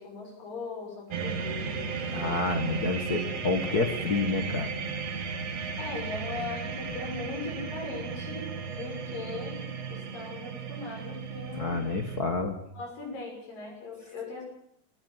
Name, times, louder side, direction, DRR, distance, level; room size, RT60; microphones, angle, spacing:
voice 1, 0.0-2.4 5.8-9.6 9.9-11.9 12.7-14.4, left 3 dB, 80° left, 1 dB, 8.2 m, -39 dB
sound 1, 1.1-12.2, right 5 dB, 50° right, 2.9 m, -35 dB
voice 2, 2.1-4.7 11.5-12.5, left 3 dB, 45° left, 6 dB, 1.3 m, -29 dB
19.5 x 16.0 x 9.5 m, 0.72 s
omnidirectional pair, 3.9 m